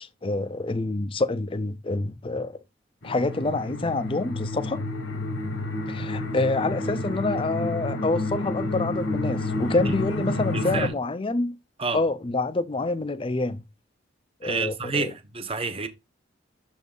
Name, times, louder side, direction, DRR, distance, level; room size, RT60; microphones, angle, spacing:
voice 1, 0.0-2.6 3.0-4.8 5.9-11.6 11.9-13.6 14.4-15.1, left 2 dB, 25° left, 0.5 m, -27 dB
sound 1, 3.0-10.9, left 2 dB, 90° left, 1.5 m, -29 dB
voice 2, 10.5-11.0 11.8-12.0 14.4-15.9, right 4 dB, 30° right, 0.9 m, -29 dB
6.9 x 3.6 x 3.7 m
head